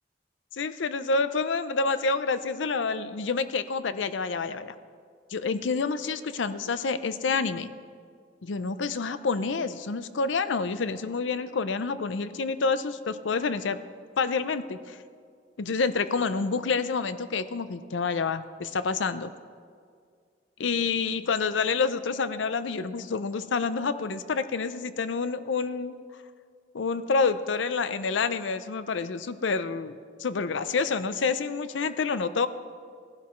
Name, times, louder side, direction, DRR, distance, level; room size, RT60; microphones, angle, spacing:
voice 1, 0.5-4.7 5.3-7.7 8.4-13.8 14.2-15.0 15.6-19.3 20.6-26.0 26.7-29.9 30.2-32.5, left 4 dB, 85° left, 13 dB, 0.5 m, -28 dB
18.0 x 11.5 x 3.2 m, 2.1 s
head